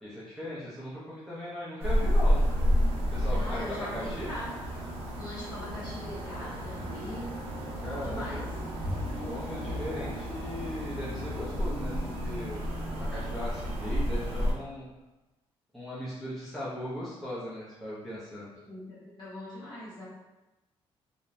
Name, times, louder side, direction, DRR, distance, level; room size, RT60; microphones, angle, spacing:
voice 1, 0.0-2.4 3.1-4.3 7.8-8.4 9.2-14.9 15.7-18.5, left 1 dB, ahead, -10 dB, 0.5 m, -38 dB
sound 1, 1.8-14.5, equal, 75° right, 0.7 m, -31 dB
voice 2, 3.3-4.8 5.2-7.4 7.8-8.5 18.5-20.1, equal, 45° left, -9 dB, 1.2 m, -41 dB
sound 2, 6.7-12.4, right 1 dB, 35° right, 0.7 m, -47 dB
2.8 x 2.0 x 2.4 m, 1.1 s
cardioid pair, 160°, 10 cm